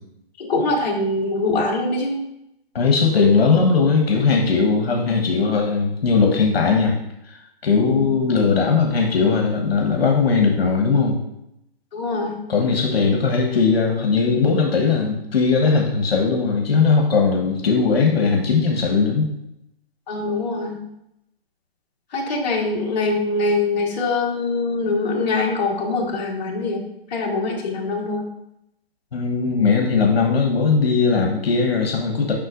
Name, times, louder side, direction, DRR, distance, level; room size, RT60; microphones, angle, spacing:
voice 1, 0.4-2.2 7.9-8.0 11.9-12.4 20.1-20.8 22.1-28.3, left 3 dB, 45° left, -3 dB, 1.6 m, -23 dB
voice 2, 2.7-7.0 7.2-11.2 12.5-19.3 29.1-32.3, left 4 dB, 75° left, 1 dB, 1.3 m, -19 dB
7.6 x 5.5 x 2.6 m, 0.82 s
hypercardioid pair, 160°, 31 cm